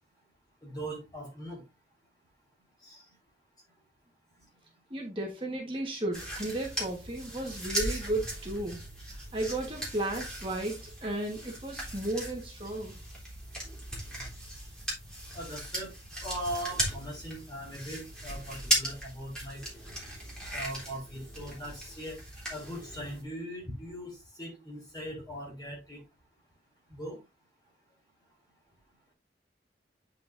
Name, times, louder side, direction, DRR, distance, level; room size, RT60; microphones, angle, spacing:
voice 1, 0.6-1.6 2.8-3.0 15.3-15.9 16.2-19.6 20.5-22.2 22.5-26.0 26.9-27.2, equal, 25° left, 4.2 m, -40 dB
voice 2, 4.9-8.8 9.3-13.0, right 1 dB, 30° right, 1.5 m, -34 dB
sound 1, 6.1-23.2, right 1 dB, 5° left, 3.3 m, -37 dB
9.0 x 5.8 x 2.7 m
head